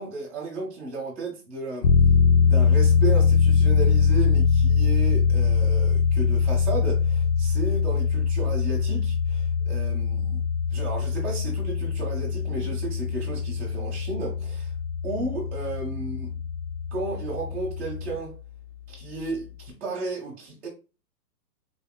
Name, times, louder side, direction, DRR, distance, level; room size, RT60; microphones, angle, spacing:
voice 1, 0.0-1.9 2.5-10.4 10.7-14.7 15.0-16.3 16.9-18.3 18.9-20.7, right 3 dB, ahead, 0.5 m, -33 dB
sound 1, 1.8-18.2, left 6 dB, 75° left, 0.6 m, -22 dB
3.9 x 2.3 x 2.2 m
hypercardioid pair, 165°, 50 cm